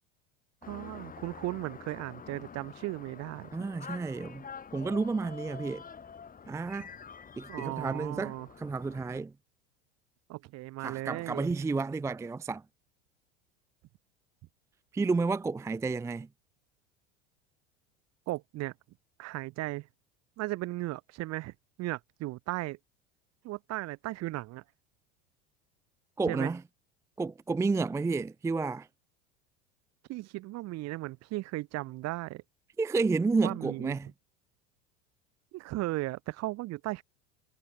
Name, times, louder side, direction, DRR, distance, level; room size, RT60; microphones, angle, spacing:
sound 1, 0.6-9.2, left 6 dB, 25° left, 5.9 m, -47 dB
voice 1, 0.7-3.7 7.5-8.5 10.3-11.5 18.3-18.7 19.2-19.9 20.4-22.8 23.4-24.6 26.3-26.5 30.1-32.4 33.4-34.0 35.5-37.0, right 18 dB, 50° right, 2.5 m, -36 dB
voice 2, 3.5-4.5 4.7-5.8 6.5-6.9 7.4-9.3 10.8-12.6 14.9-16.3 26.2-26.6 27.2-28.9 32.8-34.1, right 4 dB, 10° right, 0.5 m, -31 dB
hypercardioid pair, 90°, 32 cm